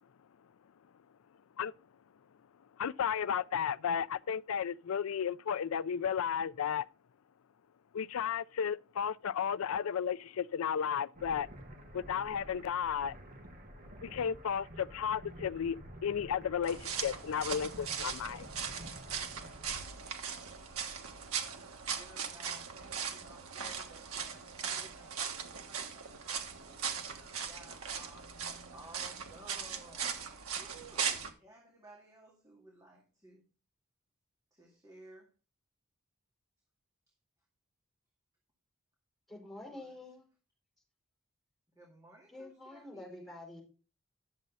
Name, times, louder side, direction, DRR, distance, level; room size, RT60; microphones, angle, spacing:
voice 1, 2.8-6.9 7.9-11.5 11.9-13.2 14.0-18.5, left 8 dB, 75° left, 0.4 m, -33 dB
sound 1, 11.1-19.9, equal, 40° right, 1.5 m, -50 dB
sound 2, 16.6-31.3, right 7 dB, 85° right, 1.6 m, -39 dB
voice 2, 21.6-26.1 26.6-28.2 28.7-30.1 30.6-33.4 34.6-35.3 39.7-39.9 41.8-43.3, right 2 dB, 15° right, 2.2 m, -57 dB
voice 3, 39.3-40.3 42.3-43.6, left 2 dB, ahead, 4.4 m, -48 dB
10.5 x 7.4 x 4.0 m
head